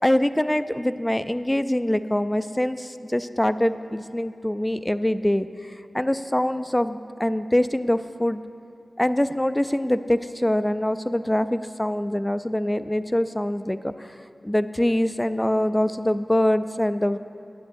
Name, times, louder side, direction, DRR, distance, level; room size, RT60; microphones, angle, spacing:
voice 1, 0.0-5.5 5.9-8.4 9.0-13.9 14.4-17.2, left 1 dB, 15° left, 12 dB, 0.4 m, -24 dB
18.5 x 10.5 x 2.6 m, 2.5 s
wide cardioid pair, 60°, 0 cm